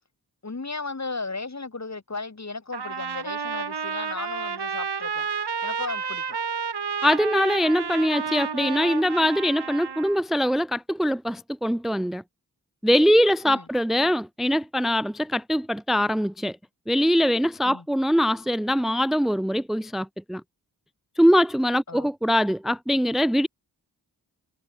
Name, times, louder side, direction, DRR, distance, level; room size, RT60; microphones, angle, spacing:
voice 1, 0.4-5.3 5.6-6.3 13.4-13.7 17.6-17.9 21.9-22.1, left 3 dB, 45° left, 3.6 m, -35 dB
Trumpet, 2.7-10.2, right 6 dB, 85° right, 2.7 m, -31 dB
voice 2, 7.0-12.2 12.8-16.6 16.9-20.4 21.2-23.5, equal, ahead, 0.6 m, -22 dB
wide cardioid pair, 65°, 39 cm